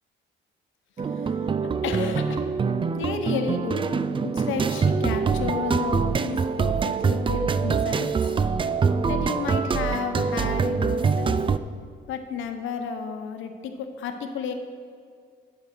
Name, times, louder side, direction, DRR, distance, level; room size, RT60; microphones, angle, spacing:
voice 1, 1.0-1.5 1.8-2.5 2.9-8.1 9.1-11.4 12.1-13.5 13.8-14.5, left 6 dB, 80° left, 6 dB, 1.0 m, -32 dB
sound 1, 1.0-11.6, right 5 dB, 25° right, 0.4 m, -24 dB
9.5 x 5.6 x 6.6 m, 2.1 s
cardioid pair, 90°, 20 cm